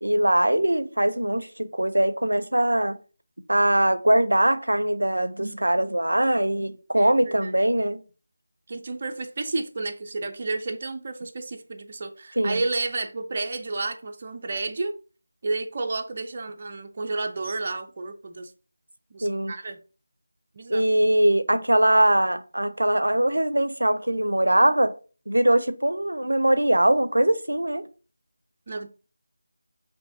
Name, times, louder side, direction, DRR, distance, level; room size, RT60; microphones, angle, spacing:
voice 1, 0.0-3.0 3.5-8.0 12.4-12.6 19.2-19.5 20.7-24.9 25.3-27.8, right 1 dB, 90° right, 0.5 m, -22 dB
voice 2, 6.9-7.5 8.7-14.9 15.4-18.5 19.1-19.8 20.5-20.8 28.7-28.9, right 3 dB, 35° right, 0.4 m, -31 dB
6.0 x 2.6 x 2.6 m
figure-of-eight pair, 170°, 0 cm